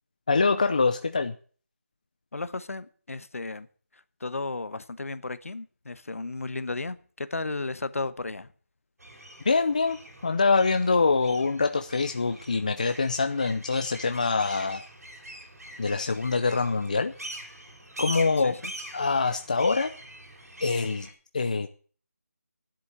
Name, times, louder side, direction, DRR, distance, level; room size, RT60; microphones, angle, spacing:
voice 1, 0.3-1.4 9.4-14.8 15.8-17.1 18.0-18.6 18.9-19.9 20.6-21.1 21.3-21.7, left 4 dB, 30° left, 0.6 m, -24 dB
voice 2, 2.3-3.7 3.9-8.5 18.4-18.7, left 3 dB, 65° left, 1.1 m, -34 dB
sound 1, 9.0-21.1, right 1 dB, 85° right, 5.5 m, -43 dB
10.5 x 8.0 x 8.3 m
figure-of-eight pair, 175°, 8 cm